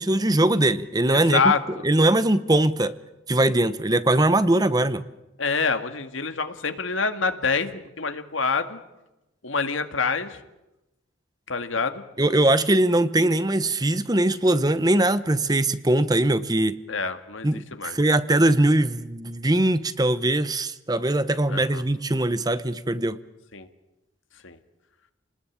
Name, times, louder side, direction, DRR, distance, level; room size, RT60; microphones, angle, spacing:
voice 1, 0.0-1.4 1.8-3.0 3.3-5.1 12.2-16.8 17.4-23.2, right 1 dB, 20° right, 14 dB, 0.9 m, -21 dB
voice 2, 1.1-1.8 5.4-8.8 9.4-10.4 11.5-12.0 16.9-18.0 21.5-21.8 23.5-23.7 24.4-24.6, left 4 dB, 85° left, 9 dB, 2.0 m, -26 dB
29.5 x 20.0 x 8.7 m, 0.98 s
head